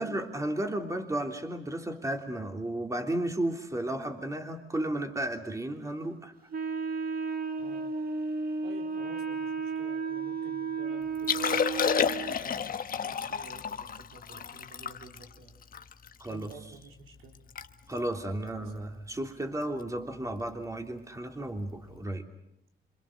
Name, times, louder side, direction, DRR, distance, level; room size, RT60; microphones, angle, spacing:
voice 1, 0.0-6.3 16.2-16.5 17.9-22.3, right 1 dB, 15° right, 4 dB, 3.3 m, -33 dB
Wind instrument woodwind instrument, 6.5-12.4, right 5 dB, 45° right, 1.9 m, -33 dB
voice 2, 7.6-7.9 8.6-11.8 12.3-15.6 16.3-17.4 18.6-18.8, right 4 dB, 85° right, 3 dB, 4.1 m, -51 dB
Liquid, 11.1-16.5 17.0-17.1 17.3-17.7 17.9-18.2 18.8-19.0 20.5-20.6, left 7 dB, 45° left, 1.3 m, -31 dB
27.5 x 27.0 x 6.7 m, 0.77 s
cardioid pair, 90°, 20 cm